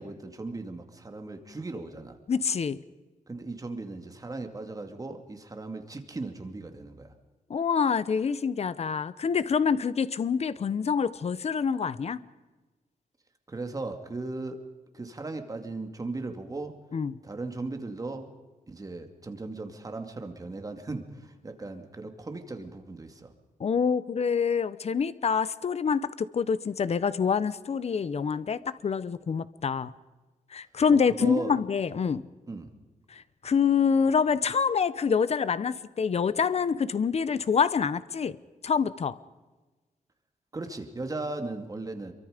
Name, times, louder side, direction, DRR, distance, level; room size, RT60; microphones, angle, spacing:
voice 1, 0.0-2.2 3.3-7.1 13.5-14.6 14.9-16.8 17.2-18.3 18.7-23.3 30.9-31.5 32.5-32.7 40.5-42.1, right 3 dB, 25° right, 6 dB, 2.4 m, -37 dB
voice 2, 2.3-2.8 7.5-12.2 16.9-17.1 23.6-29.9 30.5-32.3 33.1-38.4 38.6-39.2, left 6 dB, 50° left, 16 dB, 0.9 m, -26 dB
27.5 x 24.0 x 5.2 m, 1.2 s
wide cardioid pair, 130°, 14 cm